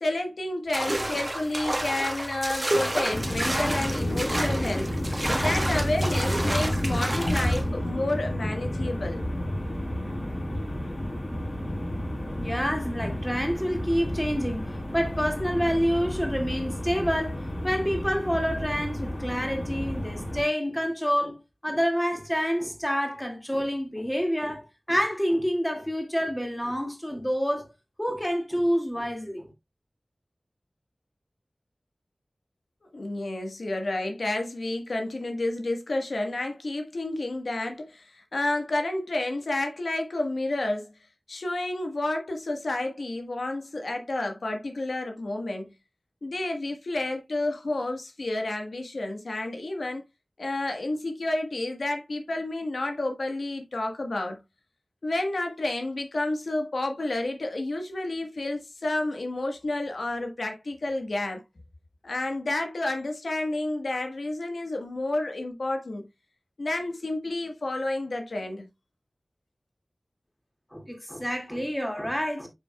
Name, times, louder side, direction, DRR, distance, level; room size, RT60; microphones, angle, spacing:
voice 1, 0.0-4.9 5.3-9.2 32.9-40.9 41.3-45.7 46.2-50.0 50.4-54.4 55.0-61.4 62.0-66.1 66.6-68.7, left 2 dB, 90° left, 1.4 m, -30 dB
sound 1, 0.7-7.6, right 1 dB, 25° right, 1.3 m, -30 dB
sound 2, 3.1-20.4, equal, 55° left, 4.7 m, -31 dB
voice 2, 12.4-14.7 14.9-17.3 17.6-27.7 28.0-29.5 70.7-72.5, equal, 10° left, 2.2 m, -28 dB
8.5 x 5.9 x 2.3 m
wide cardioid pair, 65°, 0 cm